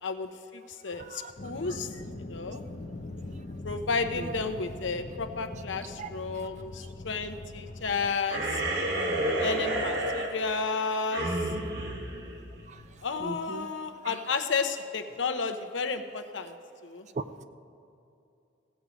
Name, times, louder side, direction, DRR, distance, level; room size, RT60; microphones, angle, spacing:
voice 1, 0.0-1.9 2.2-2.6 3.6-8.6 9.4-11.4 13.0-16.5 16.8-17.1, left 4 dB, 80° left, 8 dB, 0.8 m, -32 dB
sound 1, 1.4-8.2, left 2 dB, 40° left, 0.7 m, -42 dB
sound 2, 8.3-13.0, right 1 dB, 60° right, 1.5 m, -31 dB
voice 2, 13.2-13.7 14.0-14.1 17.2-17.3, right 2 dB, 40° right, 11 dB, 0.4 m, -36 dB
16.5 x 8.4 x 5.1 m, 2.6 s
head